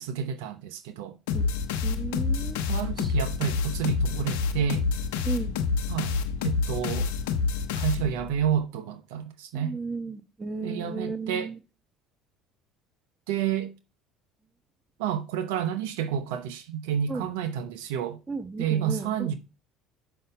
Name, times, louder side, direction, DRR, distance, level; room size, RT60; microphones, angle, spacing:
voice 1, 0.0-1.2 2.7-4.9 5.9-6.1 6.4-7.1 7.8-9.7 10.6-11.5 13.3-13.7 15.0-18.2 18.6-19.3, right 8 dB, 80° right, 0.8 m, -29 dB
sound 1, 1.3-8.4, left 5 dB, 80° left, 0.8 m, -28 dB
voice 2, 1.8-2.6 3.0-3.1 5.2-5.6 9.5-11.6 17.1-17.3 18.3-19.3, right 4 dB, 20° right, 1.2 m, -34 dB
5.6 x 5.5 x 6.7 m
hypercardioid pair, 75°, 0 cm